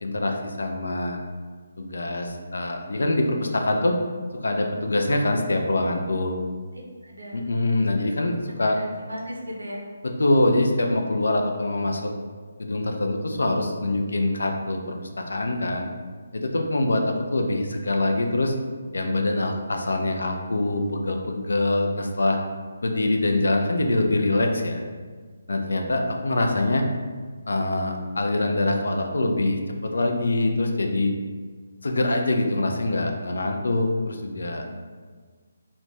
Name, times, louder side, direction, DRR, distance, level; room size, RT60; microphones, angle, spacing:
voice 1, 0.0-1.2 1.8-4.0 4.4-6.4 7.3-8.8 10.2-12.1 12.6-15.9 16.3-18.5 18.9-22.4 22.8-24.8 25.5-26.9 27.5-31.1 31.8-34.6, left 2 dB, 65° left, 3 dB, 0.3 m, -24 dB
voice 2, 7.0-7.5 8.6-9.8 34.6-35.0, equal, 80° right, -1 dB, 0.6 m, -37 dB
2.4 x 2.1 x 3.2 m, 1.5 s
figure-of-eight pair, 145°, 0 cm